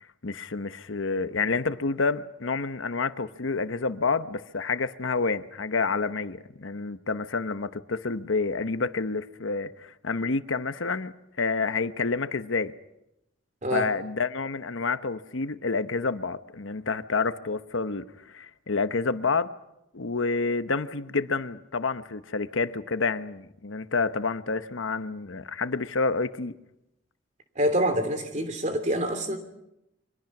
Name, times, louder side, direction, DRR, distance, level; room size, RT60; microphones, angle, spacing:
voice 1, 0.2-12.7 13.7-19.5 19.9-26.5, left 4 dB, 90° left, 1.0 m, -29 dB
voice 2, 27.5-29.4, equal, 40° right, 3.0 m, -26 dB
29.5 x 24.5 x 6.1 m
head